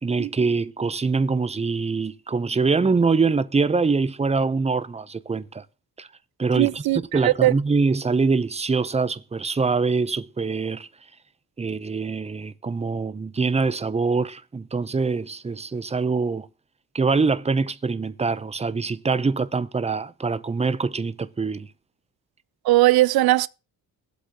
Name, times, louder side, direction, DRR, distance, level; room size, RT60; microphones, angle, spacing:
voice 1, 0.0-5.6 6.0-6.1 6.4-6.8 7.1-10.9 11.6-16.5 16.9-21.7, right 4 dB, 20° right, 0.7 m, -24 dB
voice 2, 6.6-7.5 22.6-23.5, right 17 dB, 80° right, 0.5 m, -19 dB
22.0 x 8.3 x 2.9 m
cardioid pair, 100°, 36 cm